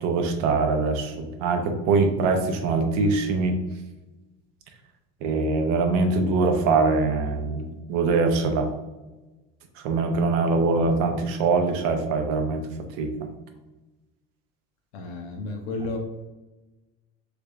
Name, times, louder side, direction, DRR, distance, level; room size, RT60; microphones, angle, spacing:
voice 1, 0.0-3.5 5.2-8.7 9.8-12.7 13.0-13.1, right 3 dB, 65° right, 5 dB, 0.7 m, -23 dB
voice 2, 14.9-16.0, left 2 dB, 90° left, 2 dB, 0.7 m, -32 dB
3.4 x 3.3 x 2.4 m, 1.1 s
cardioid pair, 135°, 31 cm